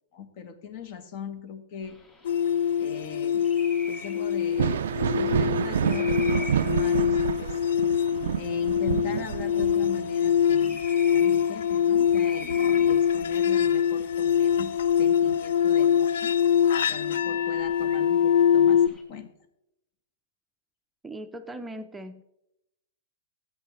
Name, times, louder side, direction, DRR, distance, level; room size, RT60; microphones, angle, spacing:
voice 1, 0.1-2.0 2.8-3.5 3.9-7.6 8.3-10.8 11.1-16.3 16.9-19.3, left 6 dB, 50° left, 11 dB, 1.1 m, -40 dB
sound 1, 1.8-19.0, left 3 dB, 25° left, 3.3 m, -47 dB
sound 2, 2.2-18.9, left 8 dB, 75° left, 0.3 m, -24 dB
Thunder, 4.4-13.7 14.1-15.3 16.9-17.0 17.8-17.9, right 8 dB, 80° right, 0.3 m, -30 dB
voice 2, 21.0-22.2, right 1 dB, 5° right, 6 dB, 0.5 m, -39 dB
13.5 x 8.2 x 3.1 m, 0.82 s
hypercardioid pair, 140°, 0 cm